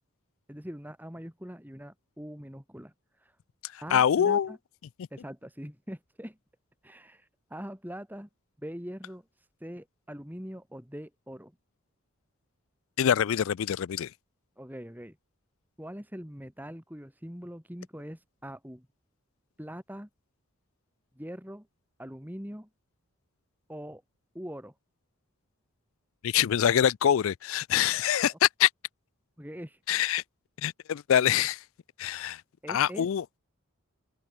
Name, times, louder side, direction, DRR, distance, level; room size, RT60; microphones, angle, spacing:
voice 1, 0.5-2.9 3.2-3.3 3.8-4.6 5.1-6.4 6.8-8.3 8.6-9.2 9.6-11.5 14.6-15.2 15.8-18.9 19.6-20.1 21.2-21.7 22.0-22.7 23.7-24.0 24.3-24.7 29.4-29.8 32.6-33.1, equal, 10° right, 3.7 m, -42 dB
voice 2, 3.9-4.5 13.0-14.1 26.2-28.7 29.9-30.2 30.6-31.6 32.0-32.4 32.7-33.2, left 9 dB, 65° left, 0.3 m, -24 dB
open air
head